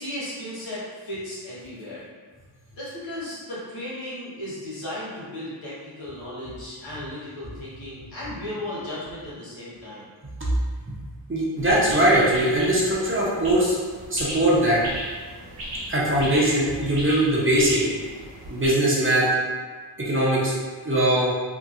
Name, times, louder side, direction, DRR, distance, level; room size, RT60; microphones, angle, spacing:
voice 1, 0.0-2.1 2.7-10.1, left 1 dB, 85° left, -9 dB, 1.2 m, -35 dB
voice 2, 11.3-13.8 14.1-14.8 15.9-17.8 18.5-19.3 20.1-20.5 20.8-21.3, right 1 dB, 30° right, -7 dB, 0.7 m, -21 dB
sound 1, 11.6-18.7, equal, 70° right, 1.0 m, -36 dB
2.8 x 2.8 x 2.5 m, 1.5 s
wide cardioid pair, 95°, 45 cm